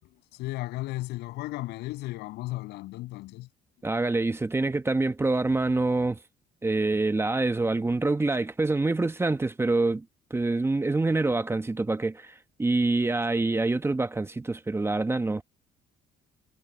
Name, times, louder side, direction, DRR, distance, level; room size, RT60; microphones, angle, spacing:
voice 1, 0.0-3.5, left 19 dB, 90° left, 7.9 m, -35 dB
voice 2, 3.8-6.2 6.6-10.0 10.3-15.4, right 2 dB, 15° right, 1.1 m, -26 dB
cardioid pair, 110°, 17 cm